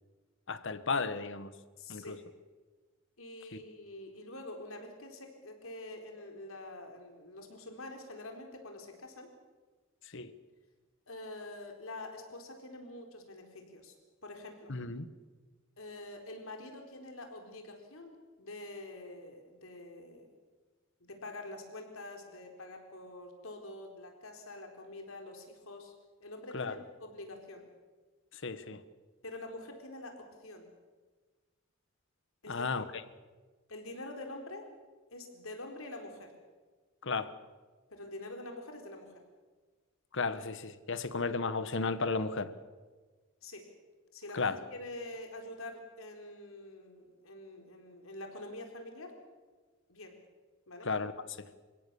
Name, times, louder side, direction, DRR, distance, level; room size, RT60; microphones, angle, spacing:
voice 1, 0.5-1.5 1.9-2.2 3.5-3.6 10.1-10.3 14.7-15.1 26.5-26.8 28.3-28.8 32.5-32.8 37.0-37.3 40.1-42.5 44.3-44.6 50.8-51.1, left 4 dB, 60° left, 13 dB, 1.3 m, -34 dB
voice 2, 1.8-2.2 3.2-9.3 11.1-13.9 14.2-14.7 15.8-20.3 21.0-25.9 26.2-27.7 29.2-30.7 32.4-32.9 33.7-34.7 35.1-36.3 37.9-39.1 43.4-43.7 44.1-49.1 49.9-50.2 50.7-50.9, left 2 dB, 80° left, 4 dB, 4.2 m, -46 dB
28.5 x 17.0 x 7.1 m, 1.4 s
head